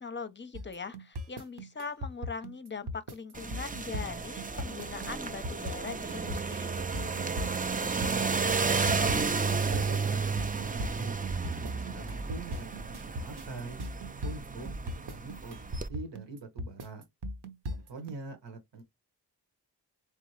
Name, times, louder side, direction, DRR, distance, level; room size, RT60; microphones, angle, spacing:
voice 1, 0.0-6.9, left 5 dB, 25° left, 0.6 m, -41 dB
sound 1, 0.5-18.1, equal, 65° right, 0.9 m, -38 dB
sound 2, 3.3-15.9, right 4 dB, 20° right, 0.4 m, -32 dB
voice 2, 7.9-8.5 8.8-11.1 11.6-13.8 14.2-17.0 17.7-18.8, right 3 dB, 80° right, 1.2 m, -44 dB
3.7 x 3.5 x 3.2 m
wide cardioid pair, 75°, 42 cm